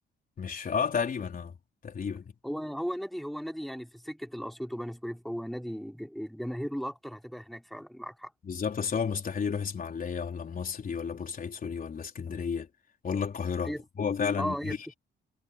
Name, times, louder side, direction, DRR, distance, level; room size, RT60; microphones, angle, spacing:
voice 1, 0.4-1.5 1.8-2.3 8.4-12.7 13.0-14.8, left 6 dB, 45° left, 4.3 m, -32 dB
voice 2, 2.4-8.3 13.7-13.8 14.4-14.9, equal, ahead, 3.6 m, -36 dB
cardioid pair, 90°, 20 cm